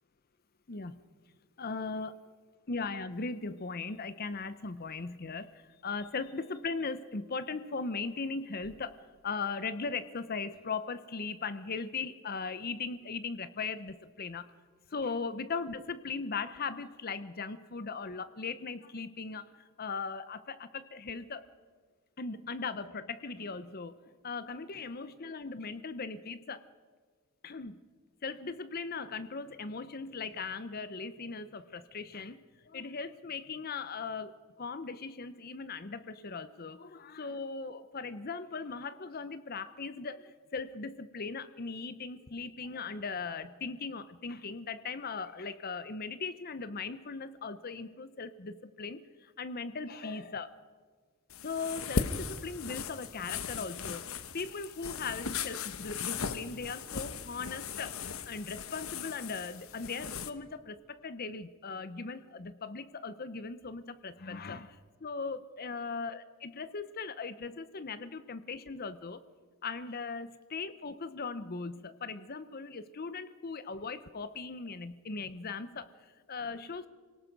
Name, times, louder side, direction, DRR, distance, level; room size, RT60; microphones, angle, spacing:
voice 1, 0.7-1.0 1.6-2.2 2.7-14.5 14.9-21.5 22.2-26.6 27.4-27.8 28.2-50.6 51.4-69.2 69.6-76.9, left 4 dB, 45° left, 13 dB, 0.8 m, -39 dB
sound 1, 51.3-60.3, left 5 dB, 75° left, 1.1 m, -38 dB
26.5 x 18.5 x 5.3 m, 1.5 s
head